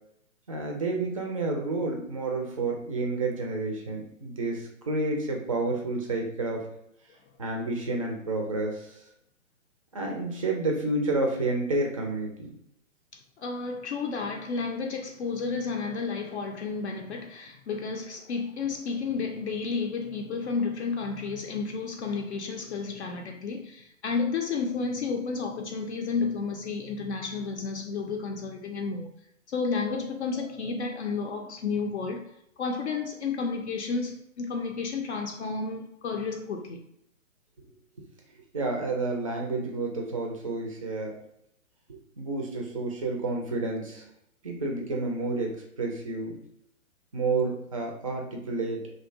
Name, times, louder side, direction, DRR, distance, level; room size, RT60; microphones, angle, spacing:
voice 1, 0.5-6.6 7.4-8.9 9.9-12.3 38.5-41.1 41.9-44.0 44.4-46.4 47.1-48.8, right 2 dB, 30° right, 0.3 m, -30 dB
voice 2, 13.4-29.1 29.5-36.8, left 4 dB, 55° left, 0.4 m, -31 dB
2.6 x 2.1 x 2.5 m
figure-of-eight pair, 125°, 40 cm